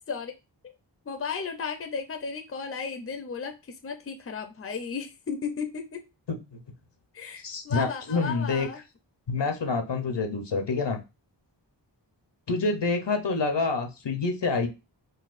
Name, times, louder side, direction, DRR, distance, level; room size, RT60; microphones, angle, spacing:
voice 1, 1.1-6.0 7.1-8.8, left 5 dB, 30° left, 6 dB, 0.5 m, -34 dB
voice 2, 7.4-8.7 9.3-11.0 12.5-14.7, left 4 dB, 70° left, 5 dB, 0.7 m, -27 dB
4.0 x 2.2 x 2.4 m, 0.26 s
wide cardioid pair, 55°, 44 cm